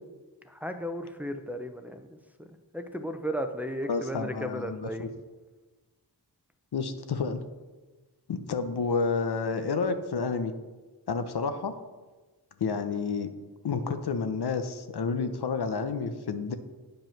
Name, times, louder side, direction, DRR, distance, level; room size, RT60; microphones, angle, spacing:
voice 1, 0.4-2.5 2.7-5.1, equal, 5° right, 6 dB, 0.7 m, -35 dB
voice 2, 3.9-5.1 6.7-7.4 8.3-10.5 11.1-11.8 12.6-13.3 13.6-16.5, left 4 dB, 75° left, 8 dB, 0.8 m, -30 dB
9.2 x 5.5 x 5.8 m, 1.2 s
wide cardioid pair, 95°, 39 cm